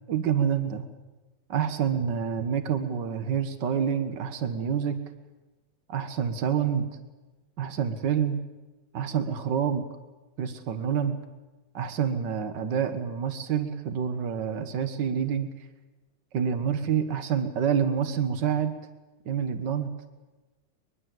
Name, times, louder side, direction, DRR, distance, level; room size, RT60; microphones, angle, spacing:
voice 1, 0.1-0.8 1.5-5.0 5.9-6.9 7.6-8.4 8.9-9.9 10.4-11.2 11.7-15.5 16.3-18.8 19.3-19.9, right 8 dB, 75° right, 9 dB, 2.0 m, -27 dB
23.0 x 22.5 x 7.8 m, 1.2 s
omnidirectional pair, 1.9 m